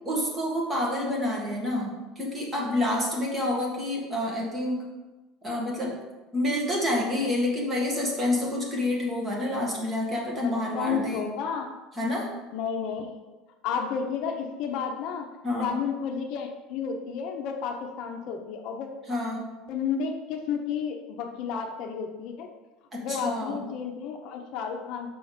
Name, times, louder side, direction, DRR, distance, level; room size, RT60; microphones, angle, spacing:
voice 1, 0.0-4.8 5.4-5.9 6.3-11.3 11.9-12.3 15.4-15.8 19.1-19.5 22.9-23.7, left 1 dB, 15° right, -2 dB, 1.7 m, -28 dB
voice 2, 10.4-11.7 12.5-13.2 13.6-18.9 19.7-22.5 23.0-25.1, left 6 dB, 55° left, 4 dB, 0.7 m, -32 dB
6.2 x 4.6 x 5.0 m, 1.1 s
cardioid pair, 155°, 0 cm